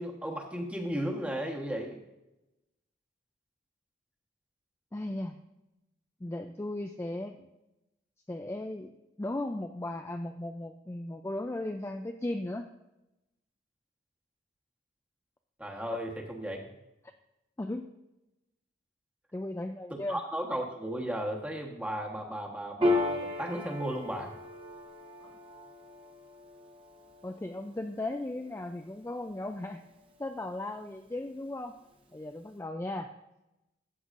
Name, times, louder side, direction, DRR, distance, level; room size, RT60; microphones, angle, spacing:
voice 1, 0.0-2.0 15.6-16.6 20.1-24.3, right 1 dB, 5° right, 0 dB, 1.2 m, -35 dB
voice 2, 4.9-5.4 6.2-7.5 8.3-12.7 17.6-17.9 19.3-20.2 25.2-25.4 27.2-29.8 30.2-31.8 32.1-33.1, left 1 dB, 15° left, 5 dB, 0.3 m, -36 dB
Piano, 22.8-29.7, left 2 dB, 25° right, 0.9 m, -35 dB
13.5 x 7.8 x 2.5 m, 0.94 s
head